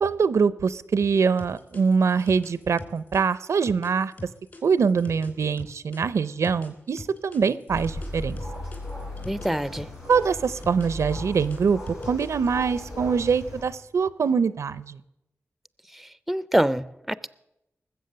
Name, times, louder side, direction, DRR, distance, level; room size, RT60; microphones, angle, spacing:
voice 1, 0.0-4.1 4.6-8.4 10.1-11.8 12.1-15.0, right 5 dB, 85° right, 0.5 m, -23 dB
sound 1, 1.4-6.0 6.4-9.5 9.8-12.5, left 2 dB, 45° left, 3.1 m, -42 dB
sound 2, 7.7-13.6, left 1 dB, 90° left, 7.5 m, -36 dB
voice 2, 9.2-9.9 15.9-17.3, right 1 dB, ahead, 0.4 m, -26 dB
20.0 x 7.8 x 6.6 m
wide cardioid pair, 95°, 5 cm